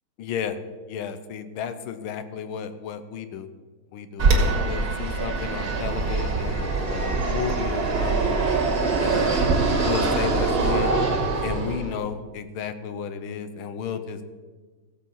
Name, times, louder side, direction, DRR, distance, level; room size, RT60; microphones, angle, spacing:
voice 1, 0.2-0.6 0.9-3.5 3.9-8.4 9.0-9.4 9.8-11.0 11.4-14.2, left 7 dB, 85° left, 10 dB, 1.6 m, -33 dB
Fixed-wing aircraft airplane, 4.2-12.0, right 3 dB, 50° right, 2.2 m, -23 dB
16.0 x 7.6 x 5.5 m, 1.4 s
omnidirectional pair, 2.3 m